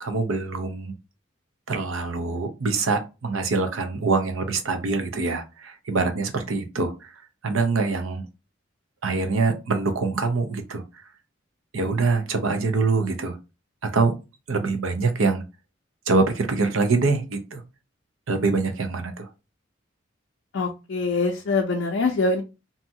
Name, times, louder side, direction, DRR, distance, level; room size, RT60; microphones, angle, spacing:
voice 1, 0.0-0.9 1.7-7.1 7.4-8.2 9.0-10.8 11.7-13.4 13.8-14.1 14.5-15.4 16.1-17.6 18.3-19.3, right 3 dB, 90° right, 7 dB, 0.6 m, -24 dB
voice 2, 20.5-22.4, left 3 dB, 60° left, 2 dB, 0.4 m, -24 dB
2.7 x 2.3 x 2.7 m, 0.27 s
head